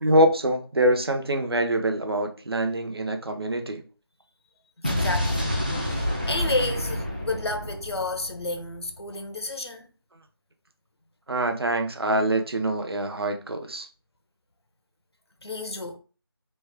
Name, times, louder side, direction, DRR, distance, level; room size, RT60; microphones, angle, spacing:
voice 1, 0.0-3.8 11.3-13.9, right 1 dB, 70° right, 0.7 m, -24 dB
voice 2, 4.8-5.5 5.8-9.9 15.4-16.0, left 2 dB, 85° left, 0.6 m, -31 dB
Explosion, 4.8-8.9, left 1 dB, 20° right, 0.3 m, -28 dB
3.1 x 2.1 x 3.4 m
figure-of-eight pair, 170°, 13 cm